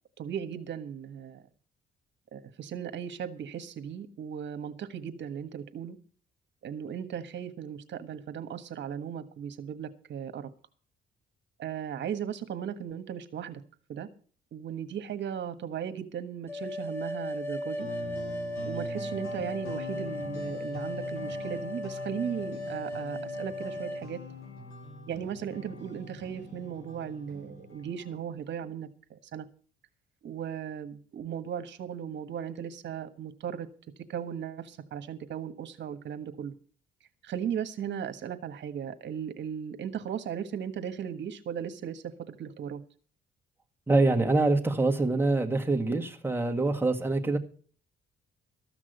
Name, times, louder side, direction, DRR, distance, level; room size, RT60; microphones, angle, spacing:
voice 1, 0.2-1.4 2.3-6.0 6.6-10.5 11.6-13.6 13.9-14.1 14.5-17.9 18.7-24.2 25.1-29.5 30.2-33.7 34.1-36.5 37.2-42.8, right 8 dB, 65° right, 10 dB, 1.4 m, -37 dB
sound 1, 16.5-24.1, left 1 dB, 10° left, 1.2 m, -36 dB
sound 2, 17.8-28.2, left 3 dB, 85° left, 3.5 m, -43 dB
voice 2, 43.9-47.4, right 2 dB, 10° right, 2 dB, 1.8 m, -25 dB
14.0 x 6.1 x 8.1 m, 0.42 s
cardioid pair, 90°, 20 cm